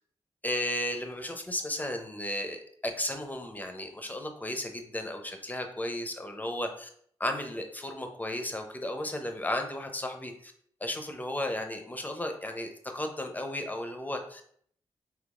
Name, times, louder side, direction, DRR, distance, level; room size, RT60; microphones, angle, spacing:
voice 1, 0.4-6.9 7.2-10.5 10.8-14.4, left 1 dB, 15° left, 5 dB, 0.6 m, -34 dB
3.9 x 2.8 x 2.4 m, 0.62 s
cardioid pair, 45°, 11 cm